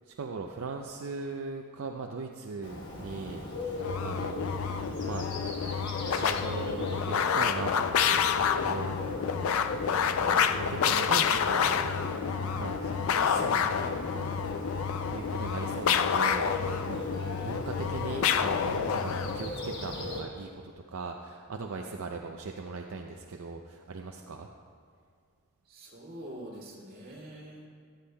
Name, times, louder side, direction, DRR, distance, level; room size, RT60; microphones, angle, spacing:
voice 1, 0.0-4.6 5.1-5.3 6.1-9.9 10.1-12.0 12.6-12.9 13.2-14.7 15.1-17.1 17.4-24.5, right 4 dB, 70° right, 2 dB, 0.5 m, -39 dB
Bird, 2.6-20.2, left 1 dB, 55° left, 1.2 m, -39 dB
sound 1, 3.8-19.5, left 7 dB, 70° left, 0.4 m, -29 dB
voice 2, 25.6-27.7, right 1 dB, 40° right, -5 dB, 2.3 m, -46 dB
13.5 x 11.5 x 2.3 m, 2.2 s
head